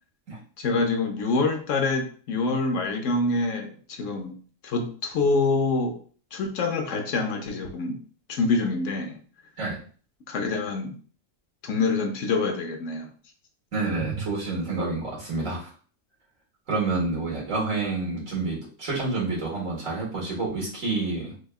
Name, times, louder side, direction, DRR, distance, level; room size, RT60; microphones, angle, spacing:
voice 1, 0.6-4.4 4.6-6.0 6.3-8.0 8.3-9.2 10.3-10.9 11.6-13.1, left 3 dB, 75° left, 4 dB, 1.1 m, -26 dB
voice 2, 13.7-15.7 16.7-21.3, right 3 dB, 90° right, -3 dB, 2.0 m, -28 dB
6.3 x 2.3 x 2.3 m, 0.42 s
omnidirectional pair, 1.3 m